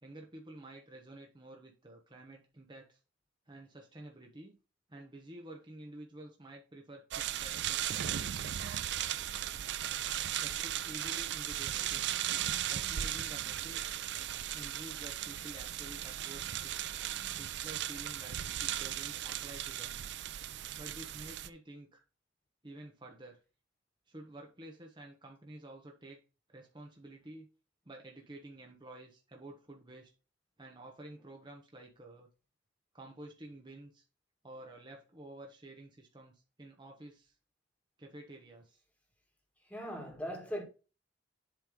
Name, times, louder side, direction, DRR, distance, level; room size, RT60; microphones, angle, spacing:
voice 1, 0.0-3.0 3.5-4.5 4.9-8.4 10.4-12.2 12.7-14.0 14.5-16.7 17.4-20.0 20.8-22.0 22.6-23.4 24.1-26.2 26.5-27.5 27.8-30.1 30.6-32.3 32.9-34.0 34.4-37.3 38.0-38.8, right 1 dB, 25° right, 1.1 m, -50 dB
sound 1, 7.1-21.5, right 11 dB, 65° right, 0.4 m, -37 dB
voice 2, 39.7-40.6, equal, 10° left, 1.9 m, -39 dB
7.7 x 3.4 x 5.2 m
head